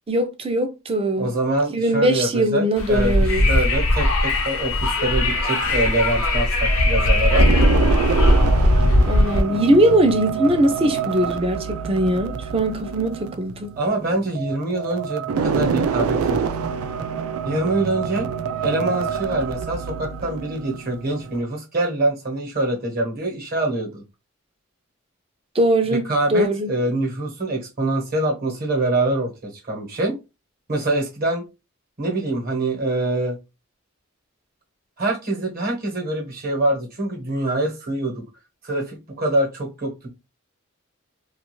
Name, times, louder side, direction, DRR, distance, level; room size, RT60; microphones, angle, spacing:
voice 1, 0.1-1.3 1.7-3.4 9.0-13.7 25.5-26.0 26.3-26.7, right 1 dB, 25° right, 0.4 m, -20 dB
voice 2, 1.2-7.5 13.8-16.4 17.4-18.3 18.6-24.0 25.9-30.2 30.7-31.4 32.0-33.4 35.0-38.2 38.6-40.1, right 2 dB, 45° right, 1.0 m, -24 dB
Wind, 2.8-9.4, left 1 dB, 85° left, 0.6 m, -19 dB
sound 1, 6.7-21.4, right 6 dB, 90° right, 0.3 m, -27 dB
2.4 x 2.4 x 3.0 m
head